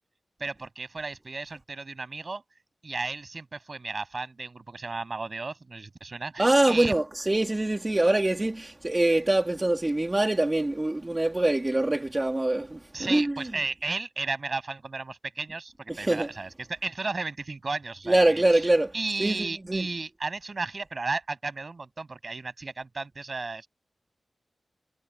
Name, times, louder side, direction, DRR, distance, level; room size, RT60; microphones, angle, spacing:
voice 1, 0.4-2.4 2.8-6.9 12.9-23.7, right 3 dB, 45° right, 7.7 m, -34 dB
voice 2, 6.4-13.5 15.9-16.3 18.1-18.9 19.2-19.8, right 1 dB, 20° right, 3.0 m, -24 dB
wide cardioid pair, 85°, 0 cm